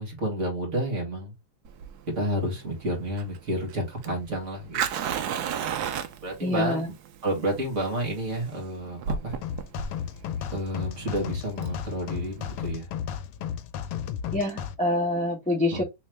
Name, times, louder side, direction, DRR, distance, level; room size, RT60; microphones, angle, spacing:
voice 1, 0.0-1.3 2.1-4.8 6.2-6.8 7.2-9.4 10.5-12.9 15.7-15.8, right 1 dB, 40° right, 1.9 m, -30 dB
Fire, 1.7-12.7, right 7 dB, 70° right, 1.0 m, -34 dB
voice 2, 6.4-6.9 14.3-15.8, left 1 dB, 5° left, 0.8 m, -26 dB
sound 1, 9.4-14.7, left 8 dB, 90° left, 1.4 m, -34 dB
3.5 x 3.1 x 3.2 m
omnidirectional pair, 2.1 m